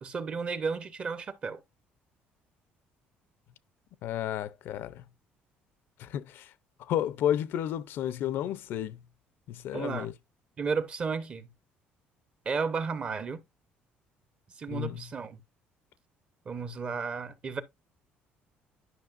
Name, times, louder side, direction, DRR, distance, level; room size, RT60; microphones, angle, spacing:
voice 1, 0.0-1.6 9.7-10.1 10.6-11.5 12.5-13.4 14.6-15.4 16.5-17.6, right 5 dB, 30° right, 0.7 m, -33 dB
voice 2, 4.0-5.0 6.0-6.5 6.8-9.0 9.5-10.1 14.7-15.0, left 11 dB, 65° left, 0.5 m, -32 dB
11.0 x 5.7 x 2.4 m
cardioid pair, 155°, 4 cm